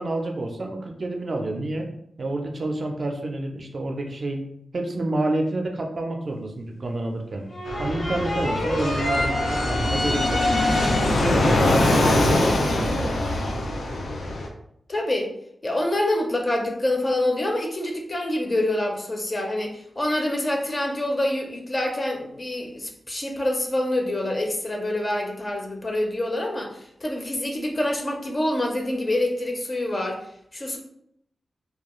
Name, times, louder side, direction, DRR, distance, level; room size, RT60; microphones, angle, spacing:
voice 1, 0.0-1.9 2.2-4.4 4.7-7.4 7.8-10.4 11.2-13.6, right 2 dB, 45° right, 2 dB, 0.4 m, -29 dB
sound 1, 7.5-11.4, left 1 dB, 65° left, 0.9 m, -27 dB
Fixed-wing aircraft airplane, 7.7-14.5, left 1 dB, 90° left, 0.4 m, -23 dB
voice 2, 14.9-15.3 15.6-30.2 30.5-30.8, left 1 dB, 30° left, 1 dB, 0.5 m, -26 dB
2.3 x 2.2 x 2.9 m, 0.72 s
wide cardioid pair, 125°, 0 cm